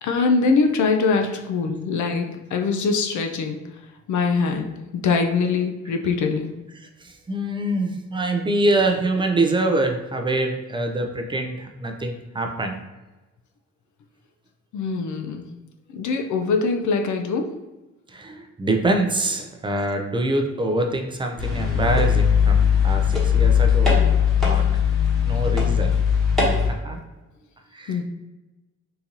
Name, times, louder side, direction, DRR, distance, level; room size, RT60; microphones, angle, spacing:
voice 1, 0.0-3.6 4.1-6.5 14.7-15.5 15.9-17.5 27.9-28.0, left 4 dB, 70° left, 4 dB, 0.5 m, -23 dB
voice 2, 6.8-12.8 18.1-24.0 24.4-24.7 25.2-26.0 26.6-27.0 27.7-28.0, right 2 dB, 15° right, 4 dB, 0.4 m, -25 dB
sound 1, 21.4-26.7, left 7 dB, ahead, 1.0 m, -19 dB
3.8 x 2.6 x 2.8 m, 1.1 s
cardioid pair, 120°, 31 cm